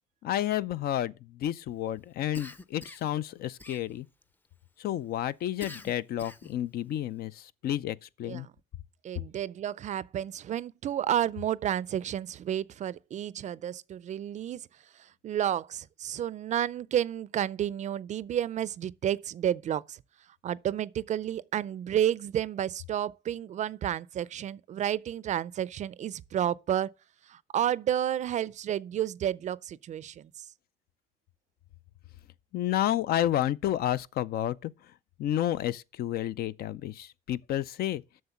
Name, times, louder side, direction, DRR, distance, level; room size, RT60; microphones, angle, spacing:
voice 1, 0.2-4.1 4.8-8.5 32.5-34.7 35.2-38.0, left 12 dB, 65° left, 0.5 m, -30 dB
Cough, 2.3-3.2 3.6-4.2 5.6-6.6, left 2 dB, 10° left, 0.6 m, -46 dB
voice 2, 9.0-14.6 15.2-20.0 20.4-26.9 27.3-30.3, right 10 dB, 45° right, 0.4 m, -31 dB
7.9 x 6.5 x 7.0 m
cardioid pair, 110°, 17 cm